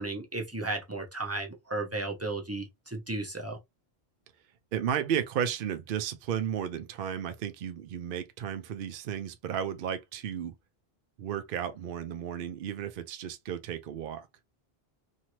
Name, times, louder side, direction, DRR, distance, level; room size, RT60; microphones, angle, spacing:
voice 1, 0.0-3.6, right 2 dB, 20° right, 0.5 m, -34 dB
voice 2, 4.7-10.5 11.2-14.3, right 9 dB, 65° right, 0.7 m, -33 dB
2.8 x 2.5 x 2.9 m
omnidirectional pair, 1.0 m